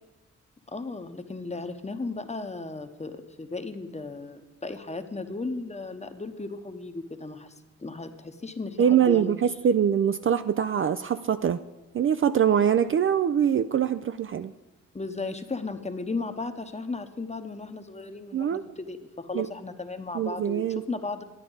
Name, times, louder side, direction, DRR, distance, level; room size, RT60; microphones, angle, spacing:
voice 1, 0.7-9.4 14.9-21.2, left 3 dB, 20° left, 9 dB, 0.9 m, -35 dB
voice 2, 8.8-11.6 11.9-14.5 18.3-18.6 19.3-19.5 20.1-20.8, right 8 dB, 40° right, 11 dB, 0.4 m, -23 dB
10.5 x 9.7 x 3.9 m, 1.1 s
supercardioid pair, 40°, 32 cm